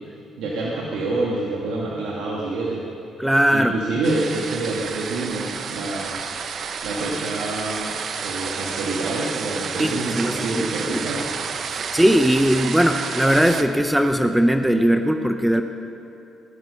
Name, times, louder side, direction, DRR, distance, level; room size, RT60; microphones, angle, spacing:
voice 1, 0.4-2.8 3.5-6.3 6.8-11.3, right 2 dB, 85° right, -4 dB, 1.9 m, -27 dB
voice 2, 3.2-3.7 9.8-10.6 10.9-11.0 11.7-15.6, equal, 5° right, 6 dB, 0.8 m, -19 dB
sound 1, 4.0-13.6, right 6 dB, 55° right, 0.9 m, -30 dB
19.5 x 12.0 x 5.7 m, 2.8 s
cardioid pair, 90°, 0 cm